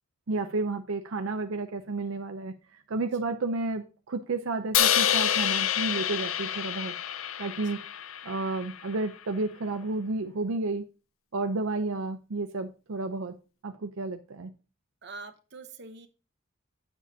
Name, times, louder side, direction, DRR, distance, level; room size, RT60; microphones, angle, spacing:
voice 1, 0.3-2.5 2.9-6.9 7.4-7.8 8.2-10.8 11.3-13.4 13.6-14.5, right 3 dB, 80° right, 6 dB, 0.6 m, -31 dB
Crash cymbal, 4.7-8.9, left 10 dB, 75° left, 0.5 m, -27 dB
voice 2, 15.0-16.1, right 3 dB, 55° right, 7 dB, 0.9 m, -45 dB
9.6 x 7.1 x 2.8 m, 0.34 s
head